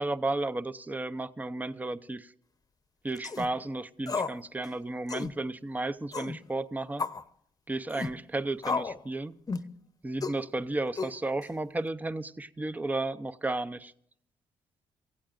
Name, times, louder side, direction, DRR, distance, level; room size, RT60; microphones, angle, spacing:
voice 1, 0.0-2.3 3.0-7.1 7.7-9.4 10.0-13.9, right 2 dB, 15° right, 0.7 m, -33 dB
sound 1, 3.2-3.5 4.1-4.4 4.6-4.7 5.1-5.3 6.1-6.4 7.0-7.2 7.9-8.1 8.6-9.0 9.5-9.7 10.2-10.4 11.0-11.4, left 4 dB, 30° left, 0.9 m, -33 dB
26.0 x 16.0 x 2.5 m
cardioid pair, 80°, 12 cm